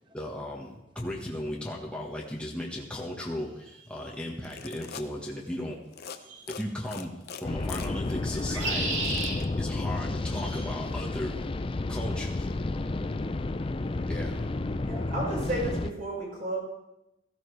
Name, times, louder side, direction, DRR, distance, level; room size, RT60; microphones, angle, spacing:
voice 1, 0.1-5.8 6.5-7.1 7.4-9.0 9.6-11.4 11.9-12.5 14.1-14.4, left 1 dB, 5° left, -2 dB, 1.3 m, -36 dB
sound 1, 3.7-3.8 6.2-6.6 8.3-9.4 10.3-10.7, right 2 dB, 65° right, 2.9 m, -33 dB
sound 2, 4.3-5.1 5.9-6.2 6.5-9.5, left 6 dB, 50° left, 0.8 m, -43 dB
sound 3, 7.4-15.9, left 2 dB, 25° left, 0.4 m, -31 dB
voice 2, 12.7-14.1 14.8-15.1, equal, 25° right, 3 dB, 1.4 m, -64 dB
voice 3, 13.2-13.7 14.8-16.6, right 2 dB, 40° right, -3 dB, 5.1 m, -33 dB
16.0 x 14.5 x 3.3 m, 0.93 s
head